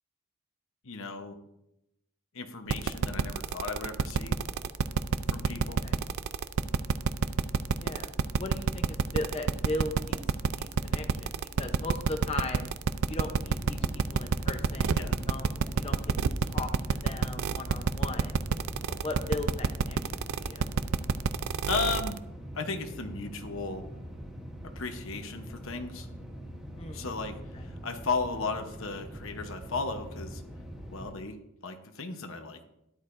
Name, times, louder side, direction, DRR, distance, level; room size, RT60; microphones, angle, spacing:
voice 1, 0.8-1.4 2.3-4.4 5.3-5.9 15.0-15.2 21.7-22.2 22.5-23.8 24.8-26.1 26.9-27.4 27.6-30.4 30.9-32.6, left 4 dB, 60° left, 6 dB, 1.0 m, -35 dB
sound 1, 2.7-22.2, right 5 dB, 75° right, 0.4 m, -27 dB
voice 2, 5.6-6.0 7.7-10.2 10.6-12.7 13.1-15.0 15.3-15.5 15.7-16.1 16.4-18.4 18.9-20.7 26.8-27.1 27.5-27.6, left 2 dB, 25° left, 4 dB, 0.8 m, -38 dB
sound 2, 13.4-31.1, equal, ahead, 1.1 m, -43 dB
13.0 x 10.5 x 2.6 m, 0.84 s
head